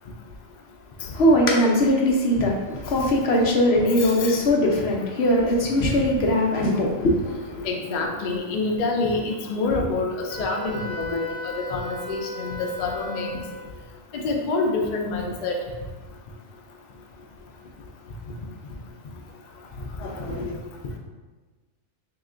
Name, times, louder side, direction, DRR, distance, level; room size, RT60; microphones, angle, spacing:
voice 1, 1.0-7.7 20.0-20.5, left 1 dB, 60° left, -1 dB, 0.8 m, -21 dB
voice 2, 4.0-4.4 5.8-5.9 7.6-13.4 14.1-15.6, left 3 dB, 80° left, 1 dB, 0.4 m, -27 dB
Wind instrument woodwind instrument, 10.3-13.8, left 2 dB, ahead, 0.5 m, -36 dB
3.2 x 2.9 x 3.7 m, 1.3 s
omnidirectional pair, 1.4 m